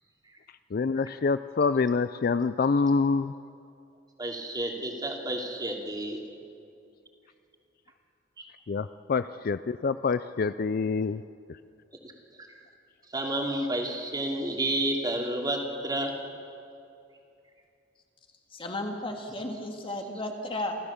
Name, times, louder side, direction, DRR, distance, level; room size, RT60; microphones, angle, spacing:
voice 1, 0.7-3.3 8.7-11.2, left 4 dB, 50° left, 13 dB, 0.4 m, -26 dB
voice 2, 4.2-6.2 12.4-12.5 13.1-16.1, right 1 dB, 20° right, 1 dB, 2.7 m, -30 dB
voice 3, 18.5-20.8, left 1 dB, 30° left, 3 dB, 2.0 m, -34 dB
28.5 x 13.5 x 7.2 m, 2.6 s
head